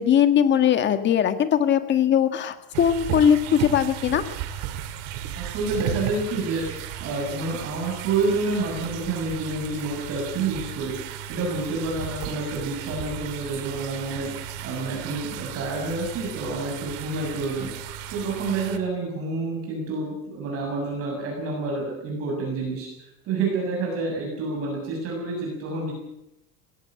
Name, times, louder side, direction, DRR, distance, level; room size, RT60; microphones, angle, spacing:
voice 1, 0.0-4.2, left 9 dB, 35° left, 9 dB, 1.7 m, -20 dB
sound 1, 2.7-18.8, right 9 dB, 75° right, 2.4 m, -35 dB
voice 2, 5.4-25.9, right 3 dB, 45° right, -1 dB, 7.0 m, -29 dB
20.0 x 17.0 x 8.9 m, 0.90 s
cardioid pair, 155°, 32 cm